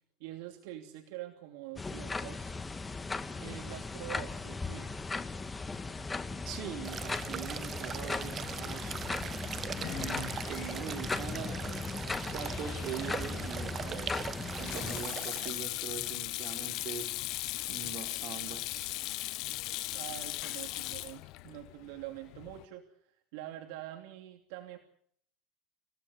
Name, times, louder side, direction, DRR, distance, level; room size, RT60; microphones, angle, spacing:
voice 1, 0.2-2.5 3.3-4.9 19.9-22.8 23.1-24.8, right 13 dB, 75° right, 5 dB, 2.8 m, -45 dB
sound 1, 1.8-15.1, left 3 dB, 15° left, 1.8 m, -38 dB
voice 2, 6.5-8.9 9.8-14.2 14.6-17.1 17.7-18.9, right 7 dB, 50° right, 4 dB, 5.4 m, -42 dB
sound 2, 6.8-15.5, right 8 dB, 30° right, 1.2 m, -41 dB
Sink (filling or washing), 9.0-22.6, left 19 dB, 60° left, 1.1 m, -40 dB
28.0 x 17.0 x 8.2 m, 0.66 s
supercardioid pair, 130°, 0 cm